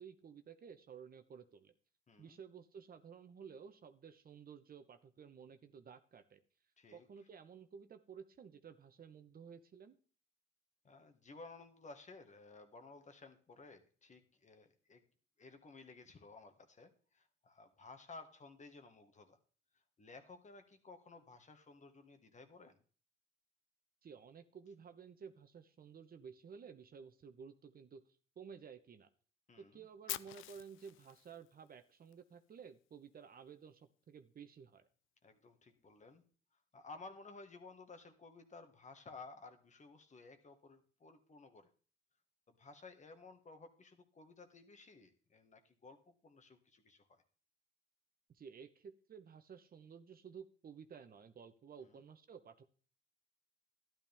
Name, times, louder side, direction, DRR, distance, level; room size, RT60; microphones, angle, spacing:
voice 1, 0.0-1.7 2.2-6.4 6.9-10.0 24.0-28.0 28.4-29.1 29.7-34.9 48.3-52.6, right 6 dB, 50° right, 9 dB, 1.1 m, -54 dB
voice 2, 2.1-2.4 6.8-7.1 10.8-15.0 15.4-19.4 20.0-22.8 29.5-29.9 35.2-36.2 36.7-41.7 42.5-47.2 51.8-52.0, left 3 dB, 35° left, 7 dB, 1.7 m, -56 dB
Fire, 30.1-32.1, left 15 dB, 85° left, 0.5 m, -46 dB
12.0 x 10.5 x 3.6 m, 0.40 s
cardioid pair, 90°, 20 cm